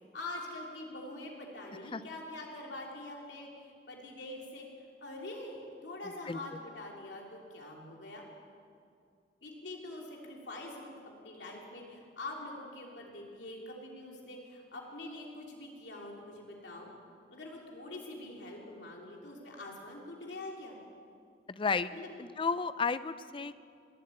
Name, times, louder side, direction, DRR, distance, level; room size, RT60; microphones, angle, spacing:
voice 1, 0.1-4.7 5.0-8.3 9.4-10.9 11.2-16.9 17.3-20.8 21.9-22.1, left 2 dB, 80° left, -1 dB, 3.2 m, -44 dB
voice 2, 6.3-6.6 21.5-21.9 22.2-23.5, left 5 dB, 30° left, 14 dB, 0.5 m, -33 dB
20.5 x 8.2 x 8.7 m, 2.3 s
head